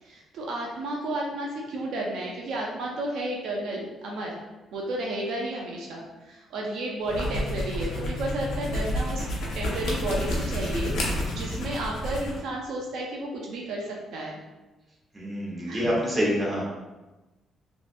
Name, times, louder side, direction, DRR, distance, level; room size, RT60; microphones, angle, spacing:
voice 1, 0.0-4.4 4.7-14.4 15.6-15.9, right 1 dB, 75° right, -2 dB, 0.5 m, -32 dB
sound 1, 7.0-12.4, left 1 dB, 75° left, 0.7 m, -30 dB
voice 2, 15.1-16.6, equal, 20° right, -5 dB, 1.2 m, -26 dB
3.1 x 2.7 x 2.5 m, 1.1 s
cardioid pair, 90°, 0 cm